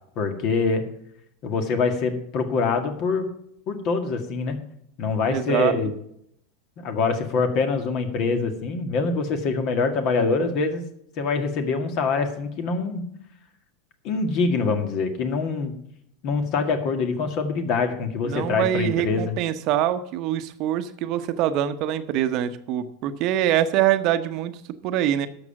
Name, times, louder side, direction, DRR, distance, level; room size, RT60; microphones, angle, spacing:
voice 1, 0.2-0.8 1.4-3.3 3.7-4.6 5.0-5.9 6.8-10.8 11.2-13.0 14.0-15.8 16.2-19.4, left 4 dB, 50° left, 7 dB, 1.9 m, -24 dB
voice 2, 5.3-5.8 18.2-24.5 24.8-25.3, right 11 dB, 50° right, 11 dB, 0.9 m, -24 dB
12.0 x 7.1 x 5.9 m, 0.74 s
figure-of-eight pair, 85°, 0 cm